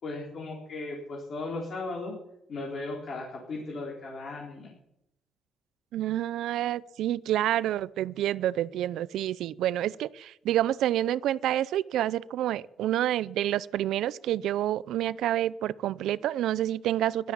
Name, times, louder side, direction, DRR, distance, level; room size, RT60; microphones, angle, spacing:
voice 1, 0.0-2.1 2.5-4.7, left 2 dB, 45° left, -2 dB, 4.0 m, -36 dB
voice 2, 5.9-17.3, right 12 dB, 85° right, 18 dB, 0.5 m, -28 dB
15.5 x 12.5 x 7.2 m, 0.82 s
cardioid pair, 155°, 0 cm